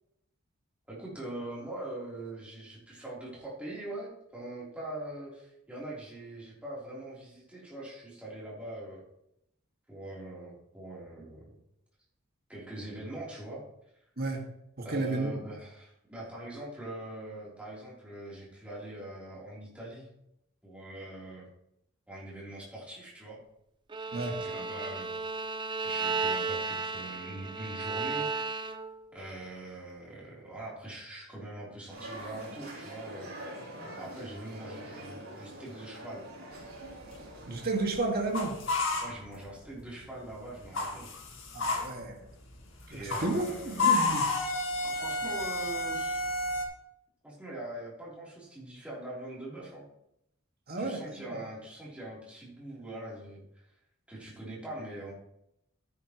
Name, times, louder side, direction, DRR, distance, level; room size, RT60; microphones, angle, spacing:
voice 1, 0.9-9.0 9.9-11.5 12.5-13.6 14.8-20.1 20.6-21.5 22.1-23.4 24.1-25.6 25.8-28.3 29.1-33.4 34.0-36.3 39.0-41.1 42.9-43.9 44.8-46.3 47.2-49.8 50.8-53.6 54.1-55.1, right 1 dB, 5° right, -7 dB, 3.4 m, -42 dB
voice 2, 14.8-15.4 24.1-24.4 37.5-38.6 41.5-42.3 42.9-43.5 43.8-44.3 50.7-51.0 51.3-51.4, right 2 dB, 45° right, 2 dB, 1.8 m, -32 dB
Bowed string instrument, 23.9-29.1, right 4 dB, 20° right, 0.5 m, -34 dB
sound 1, 31.9-37.9, right 1 dB, 80° right, 3.7 m, -44 dB
sound 2, 36.6-39.9 40.1-46.6, left 3 dB, 60° left, 1.9 m, -31 dB
13.0 x 10.0 x 3.0 m, 0.80 s
head